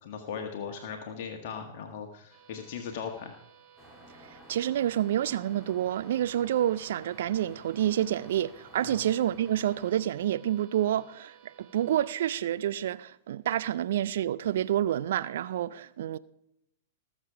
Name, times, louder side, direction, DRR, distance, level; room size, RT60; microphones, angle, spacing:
voice 1, 0.0-3.3 8.8-9.0, left 6 dB, 50° left, 1.6 m, -38 dB
sound 1, 2.3-12.2, right 9 dB, 30° right, 2.3 m, -57 dB
sound 2, 3.8-9.9, equal, 5° left, 3.8 m, -54 dB
voice 2, 4.5-16.2, right 11 dB, 60° right, 0.5 m, -28 dB
19.5 x 7.4 x 4.8 m
figure-of-eight pair, 100°, 0 cm